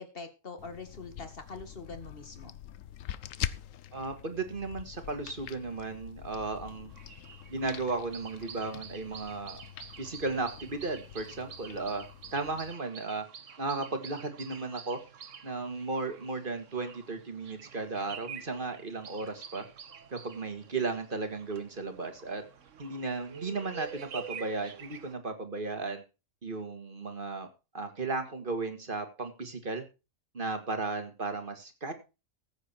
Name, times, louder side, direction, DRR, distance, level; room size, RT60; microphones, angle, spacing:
voice 1, 0.0-2.6, left 4 dB, 45° left, 8 dB, 2.2 m, -44 dB
sound 1, 0.6-12.7, left 11 dB, 80° left, 1.1 m, -44 dB
voice 2, 3.9-6.9 7.5-9.6 10.0-12.1 12.3-13.2 13.6-15.0 15.4-19.7 20.1-22.4 22.8-26.0 26.4-27.5 27.7-29.8 30.3-31.9, right 3 dB, 40° right, 7 dB, 2.1 m, -35 dB
sound 2, 6.9-25.1, right 7 dB, 70° right, 1.5 m, -48 dB
14.5 x 8.5 x 4.4 m, 0.30 s
omnidirectional pair, 1.3 m